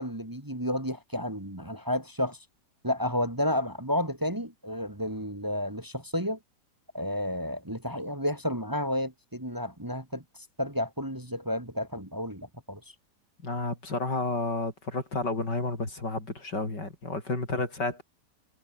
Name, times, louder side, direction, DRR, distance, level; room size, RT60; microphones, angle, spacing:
voice 1, 0.0-2.4 2.8-6.4 6.9-10.2 10.6-12.8, left 1 dB, 10° right, 2.4 m, -31 dB
voice 2, 13.4-18.0, left 2 dB, 80° left, 6.6 m, -31 dB
omnidirectional pair, 1.8 m